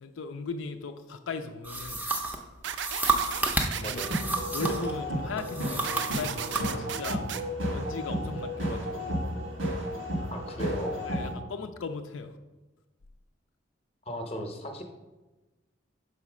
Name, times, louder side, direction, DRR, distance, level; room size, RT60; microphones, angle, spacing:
voice 1, 0.0-2.0 3.7-4.0 4.5-7.2 7.7-9.2 11.1-12.4, left 4 dB, 80° left, 6 dB, 0.4 m, -38 dB
sound 1, 1.6-4.9 5.4-6.7, right 2 dB, 10° right, 0.5 m, -31 dB
sound 2, 2.6-4.2 5.8-7.4, right 9 dB, 65° right, 0.3 m, -35 dB
sound 3, 3.9-11.3, equal, 85° right, 1.4 m, -32 dB
voice 2, 10.2-11.1 14.0-14.8, equal, 30° left, 4 dB, 0.7 m, -36 dB
5.5 x 4.1 x 5.9 m, 1.1 s
head